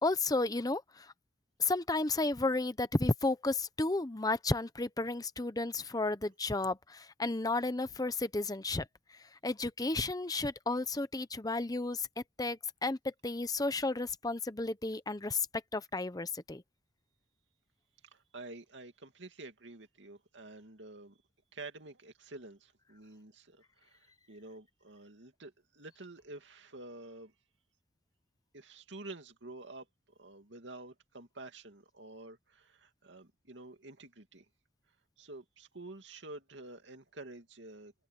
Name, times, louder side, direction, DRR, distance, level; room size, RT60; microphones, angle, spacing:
voice 1, 0.0-1.1 1.6-8.9 9.4-15.5 15.7-16.6, left 2 dB, 20° left, 0.8 m, -33 dB
voice 2, 18.0-21.2 21.5-27.3 28.5-34.5 35.2-37.9, right 2 dB, 80° right, 2.5 m, -49 dB
head